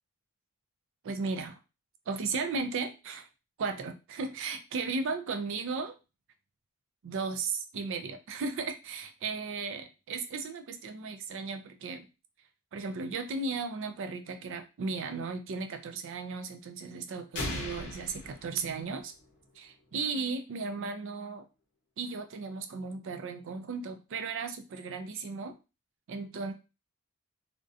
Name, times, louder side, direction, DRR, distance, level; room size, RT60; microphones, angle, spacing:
voice 1, 1.0-1.6 2.1-3.3 3.6-6.0 7.0-12.1 12.7-19.1 19.6-21.5 22.0-25.6 26.1-26.5, right 4 dB, 55° right, 8 dB, 0.4 m, -35 dB
sound 1, 17.3-19.3, left 2 dB, 50° left, 0.7 m, -38 dB
2.4 x 2.1 x 2.5 m, 0.29 s
head